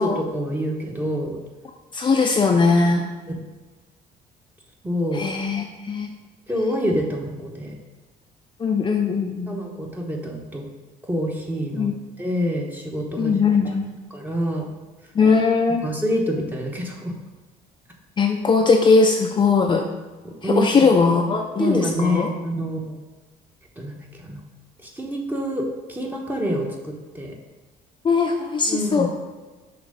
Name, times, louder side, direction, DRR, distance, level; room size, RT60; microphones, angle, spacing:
voice 1, 0.0-1.4 3.3-3.4 4.8-5.2 6.5-7.7 9.5-10.6 11.0-11.9 12.2-13.4 14.1-14.7 15.8-17.1 20.4-20.8 21.6-23.0 23.8-24.0 24.2-24.4 24.8-27.3 28.7-29.1, equal, 10° right, 0 dB, 1.1 m, -26 dB
voice 2, 1.9-3.1 5.1-6.1 8.6-9.6 11.7-11.9 13.2-13.9 15.1-15.8 18.2-19.9 20.4-22.3 28.0-29.1, left 4 dB, 30° left, 2 dB, 0.5 m, -19 dB
6.0 x 3.1 x 5.1 m, 1.3 s
cardioid pair, 110°, 17 cm